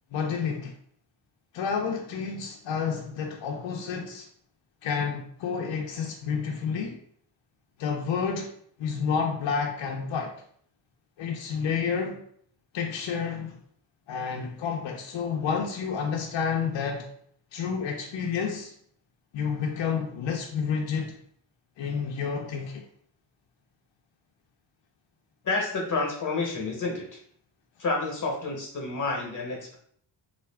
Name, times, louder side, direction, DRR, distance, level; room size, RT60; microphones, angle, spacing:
voice 1, 0.1-0.8 1.5-4.3 4.8-7.0 7.8-8.5 8.8-10.4 11.2-12.2 12.7-13.6 14.1-17.1 17.5-18.7 19.3-21.2 21.8-22.8, left 6 dB, 75° left, 0.6 m, -30 dB
voice 2, 25.4-27.2 27.8-29.8, left 3 dB, 45° left, 0.9 m, -29 dB
3.4 x 2.5 x 3.3 m
wide cardioid pair, 125°, 44 cm